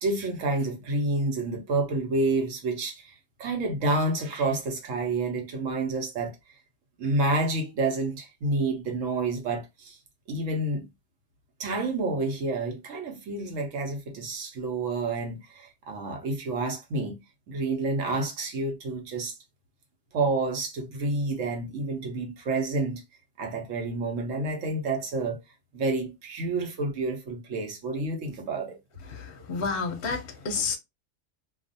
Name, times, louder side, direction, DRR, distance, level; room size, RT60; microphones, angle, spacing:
voice 1, 0.0-3.1 3.4-6.4 7.0-10.0 10.3-10.9 11.6-17.2 17.5-19.4 20.1-23.0 23.4-25.4 25.7-28.8, right 2 dB, 75° right, 1.1 m, -29 dB
voice 2, 29.1-30.8, left 4 dB, 55° left, 0.7 m, -30 dB
2.5 x 2.3 x 2.6 m
omnidirectional pair, 1.3 m